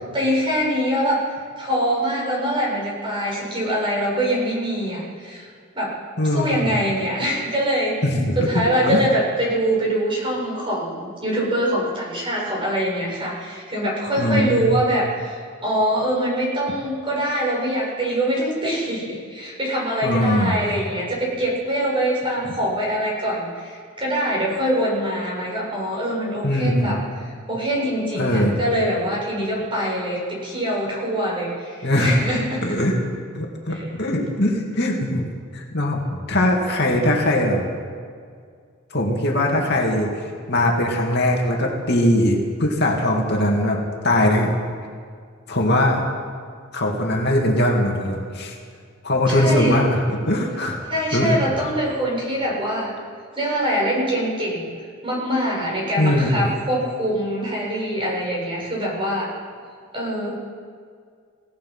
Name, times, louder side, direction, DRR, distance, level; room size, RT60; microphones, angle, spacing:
voice 1, 0.1-1.3 1.6-5.5 5.8-5.9 6.3-8.0 8.4-32.8 33.7-33.9 49.3-49.8 50.9-52.9 53.4-54.7 55.0-59.3 59.9-60.3, equal, 25° right, -3 dB, 7.4 m, -24 dB
voice 2, 6.2-6.7 8.0-9.0 14.2-14.7 20.0-20.6 26.4-27.0 28.1-28.6 31.8-32.2 32.6-33.0 33.3-35.3 35.5-37.6 38.9-40.1 40.5-43.8 44.0-44.5 45.5-46.0 46.7-48.6 49.0-50.0 50.3-50.8 51.1-51.4 56.0-56.4, left 1 dB, 50° left, 0 dB, 2.6 m, -20 dB
28.5 x 17.5 x 5.8 m, 2.1 s
head